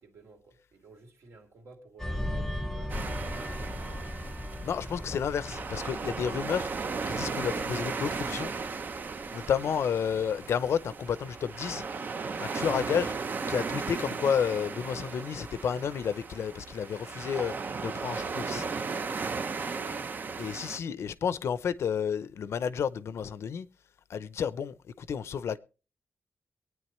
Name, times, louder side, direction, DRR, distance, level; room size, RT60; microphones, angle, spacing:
voice 1, 0.0-4.1 19.4-20.1, right 3 dB, 70° right, 2.9 m, -53 dB
sound 1, 2.0-11.0 11.4-11.6, left 1 dB, 5° left, 0.9 m, -39 dB
sound 2, 2.9-20.8, right 4 dB, 40° right, 0.7 m, -36 dB
voice 2, 4.6-6.7 7.1-8.5 9.3-11.8 12.4-13.1 13.5-17.5 17.8-18.7 20.4-23.7 24.1-25.6, left 7 dB, 75° left, 0.7 m, -31 dB
23.5 x 9.3 x 3.1 m
wide cardioid pair, 165°, 5 cm